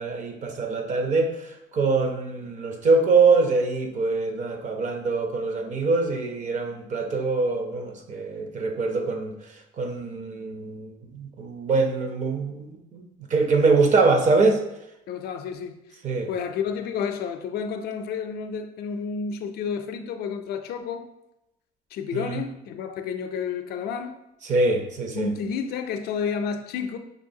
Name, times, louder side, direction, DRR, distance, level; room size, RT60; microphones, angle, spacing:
voice 1, 0.0-9.4 9.8-13.0 13.3-14.6 16.0-16.3 22.1-22.4 24.4-25.3, right 3 dB, 45° right, 0.6 m, -24 dB
voice 2, 15.1-15.8 16.3-21.1 21.9-24.2 25.1-27.0, left 6 dB, 70° left, 0.4 m, -30 dB
5.2 x 3.1 x 2.7 m
cardioid pair, 110°, 17 cm